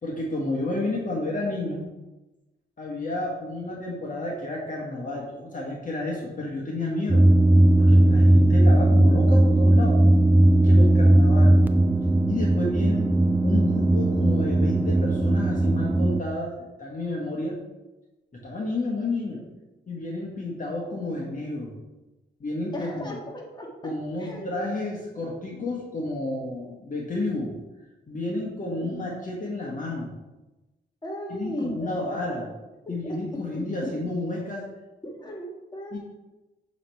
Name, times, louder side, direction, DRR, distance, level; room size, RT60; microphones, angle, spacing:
voice 1, 0.0-1.8 2.8-7.3 7.8-10.0 10.6-11.6 12.3-13.1 13.4-16.5 16.8-17.6 18.3-19.4 19.9-21.7 22.4-23.2 23.8-27.5 28.1-30.1 31.3-32.5 32.9-34.7 35.9-36.0, left 2 dB, 45° left, -2 dB, 1.2 m, -31 dB
sound 1, 7.1-16.2, right 1 dB, 10° right, 0.4 m, -18 dB
voice 2, 22.7-23.9 24.2-24.6 25.5-25.6 28.8-29.0 31.0-32.5 33.0-33.2 35.0-36.0, equal, 25° left, -1 dB, 1.5 m, -36 dB
6.9 x 3.1 x 4.5 m, 1.1 s
cardioid pair, 70°, 19 cm